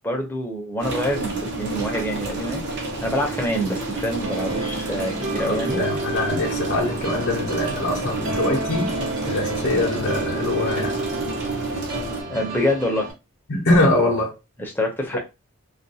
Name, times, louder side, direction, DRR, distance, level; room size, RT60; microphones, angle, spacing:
voice 1, 0.0-5.8 12.3-13.1 14.6-15.2, equal, 10° left, 0.6 m, -26 dB
sound 1, 0.8-12.2, right 3 dB, 55° right, 0.7 m, -30 dB
sound 2, 4.2-13.1, right 2 dB, 75° right, 1.1 m, -31 dB
voice 2, 5.4-8.9 9.2-10.9 13.5-14.3, left 1 dB, 55° left, 0.6 m, -23 dB
2.3 x 2.2 x 2.7 m
head